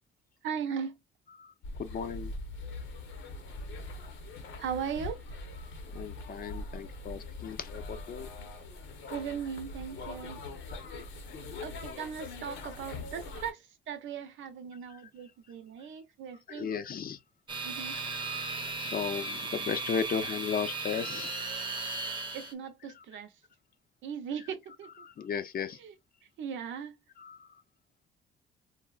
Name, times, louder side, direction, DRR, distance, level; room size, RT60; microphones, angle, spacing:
voice 1, 0.4-1.0 4.6-5.3 9.1-10.4 11.6-16.7 17.6-18.0 22.3-23.3 24.0-25.1 25.8-25.9 26.4-26.9, right 7 dB, 75° right, 0.7 m, -38 dB
sound 1, 1.6-13.5, left 2 dB, 75° left, 0.9 m, -42 dB
voice 2, 1.8-2.3 5.9-8.3 10.8-11.1 16.5-17.2 18.1-21.3 25.0-25.8 27.2-27.5, left 7 dB, 50° left, 0.5 m, -36 dB
sound 2, 17.5-22.5, right 3 dB, 25° right, 0.8 m, -36 dB
3.8 x 2.1 x 2.3 m
cardioid pair, 90°, 20 cm